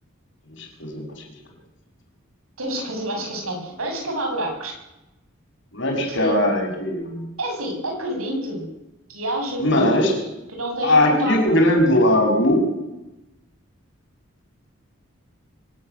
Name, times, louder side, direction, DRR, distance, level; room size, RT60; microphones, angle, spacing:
voice 1, 0.5-1.2 5.7-7.2 9.6-10.1 10.8-12.6, left 1 dB, 60° left, 1 dB, 6.4 m, -19 dB
voice 2, 2.6-4.7 6.0-6.3 7.4-8.6 9.1-10.2 10.5-11.6, equal, 90° right, 2 dB, 7.7 m, -28 dB
23.5 x 13.0 x 9.6 m, 0.93 s
head